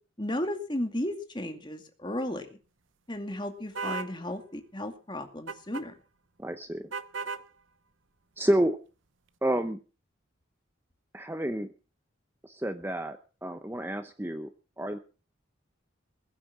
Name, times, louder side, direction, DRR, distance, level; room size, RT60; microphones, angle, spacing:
voice 1, 0.2-2.5 3.1-5.9, left 1 dB, 25° left, 6 dB, 2.3 m, -34 dB
sound 1, 3.7-4.1 5.5-5.9 6.9-7.5, right 4 dB, 75° right, 0.8 m, -35 dB
voice 2, 6.4-6.9 7.3-7.4 8.4-8.8 9.4-9.8 11.1-11.7 12.4-14.5 14.8-15.0, right 1 dB, 10° right, 8 dB, 0.8 m, -29 dB
21.0 x 8.5 x 6.1 m, 0.37 s
head